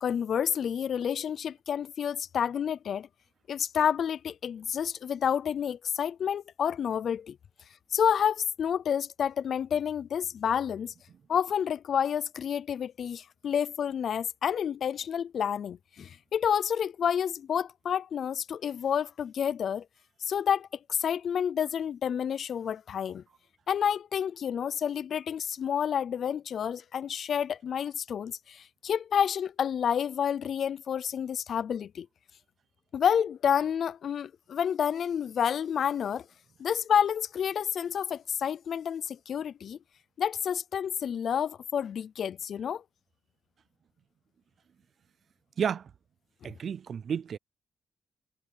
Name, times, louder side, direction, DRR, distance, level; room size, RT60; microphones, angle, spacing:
voice 1, 0.0-3.1 3.5-7.4 7.9-10.9 11.3-19.8 20.2-23.2 23.7-32.1 32.9-36.3 36.6-39.8 40.2-42.8 46.4-46.5, left 8 dB, 55° left, 0.4 m, -29 dB
voice 2, 45.6-45.9 46.4-47.4, right 7 dB, 45° right, 0.4 m, -31 dB
cardioid pair, 155°, 0 cm